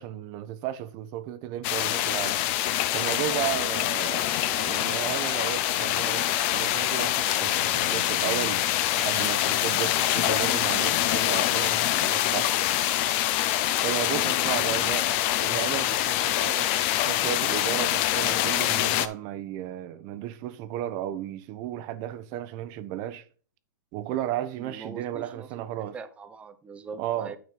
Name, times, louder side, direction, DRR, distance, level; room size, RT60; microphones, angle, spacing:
voice 1, 0.0-2.4 2.9-8.6 8.9-12.6 13.8-15.1 15.4-16.7 17.0-23.2 23.9-26.0 27.0-27.4, right 12 dB, 35° right, 0.9 m, -34 dB
sound 1, 1.6-19.1, left 13 dB, 40° left, 0.8 m, -25 dB
sound 2, 3.7-10.7, left 3 dB, 15° left, 1.7 m, -43 dB
voice 2, 24.6-25.6 25.9-27.4, right 4 dB, 10° right, 0.7 m, -43 dB
9.6 x 4.3 x 5.2 m
hypercardioid pair, 140°, 10 cm